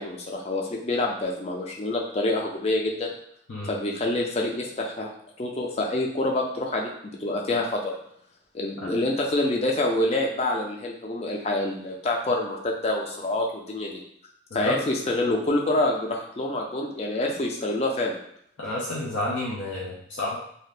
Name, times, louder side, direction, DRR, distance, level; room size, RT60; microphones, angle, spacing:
voice 1, 0.0-3.1 3.7-5.1 5.4-7.9 8.5-14.0 14.5-18.2, left 2 dB, 35° left, 0 dB, 0.4 m, -27 dB
voice 2, 18.6-20.4, left 1 dB, 90° left, -5 dB, 0.6 m, -30 dB
2.7 x 2.4 x 3.3 m, 0.70 s
head